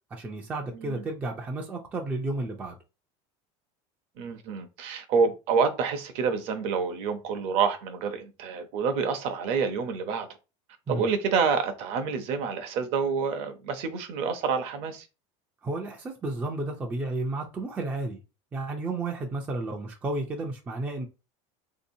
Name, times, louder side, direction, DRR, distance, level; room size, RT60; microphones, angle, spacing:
voice 1, 0.1-2.8 10.9-11.1 15.6-18.2 18.5-21.1, right 2 dB, 10° right, 0.3 m, -32 dB
voice 2, 4.2-10.3 10.9-15.1, right 5 dB, 45° right, 0.6 m, -28 dB
3.7 x 2.7 x 2.6 m
cardioid pair, 175°, 15 cm